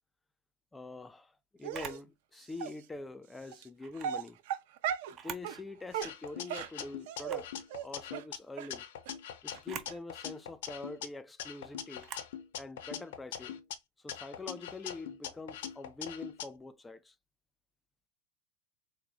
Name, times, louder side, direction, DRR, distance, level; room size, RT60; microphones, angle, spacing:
voice 1, 0.7-4.4 5.1-8.8 9.4-12.1 12.5-13.6 14.0-17.2, left 3 dB, 10° left, 0.3 m, -45 dB
Dog, 1.6-2.0 2.6-2.7 3.5-3.6 4.0-5.1 5.4-5.6 5.9-7.4 7.7-7.9 8.1-8.2 8.6-8.7 9.1-9.2 9.5-9.6 9.9-10.0, right 9 dB, 70° right, 0.6 m, -37 dB
Camera, 1.7-2.1 3.8-4.1 5.1-5.5 6.0-6.1 7.2-7.5 9.6-9.9 12.0-12.3, right 8 dB, 40° right, 0.8 m, -44 dB
sound 1, 6.0-8.4 8.7-11.1 11.4-13.8 14.1-16.5, left 9 dB, 75° left, 0.6 m, -42 dB
3.3 x 2.0 x 3.9 m
hypercardioid pair, 105°, 0 cm